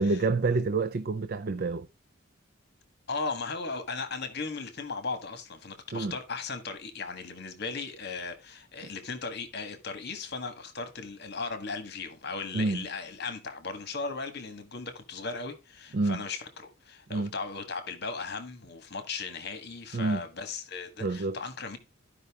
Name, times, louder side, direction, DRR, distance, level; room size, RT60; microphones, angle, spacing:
voice 1, 0.0-1.9 5.9-6.1 8.8-8.9 12.5-12.9 15.9-16.2 17.1-17.3 19.9-20.2 21.0-21.4, right 3 dB, 50° right, 0.5 m, -28 dB
voice 2, 3.1-21.8, left 4 dB, 55° left, 1.7 m, -37 dB
13.5 x 5.4 x 3.6 m
head